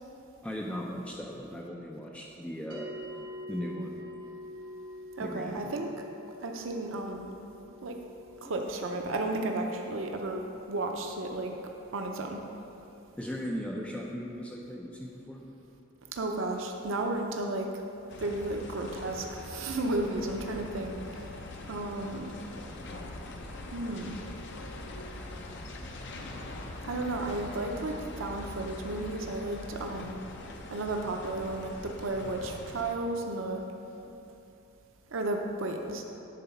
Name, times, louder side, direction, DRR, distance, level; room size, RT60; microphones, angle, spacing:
voice 1, 0.4-2.9 3.5-4.0 5.2-5.7 13.2-15.4, equal, 5° left, -2 dB, 0.5 m, -37 dB
sound 1, 2.7-13.3, left 1 dB, 50° right, 1.8 m, -47 dB
voice 2, 5.2-5.9 6.4-7.3 7.8-8.0 8.4-11.6 11.9-12.4 16.1-17.7 18.2-21.4 21.7-22.3 23.7-24.2 26.8-30.2 30.7-33.6 35.1-36.0, right 2 dB, 75° right, 3 dB, 0.6 m, -33 dB
sound 2, 18.1-33.0, left 2 dB, 60° left, 0.7 m, -43 dB
10.5 x 4.0 x 5.7 m, 2.8 s
head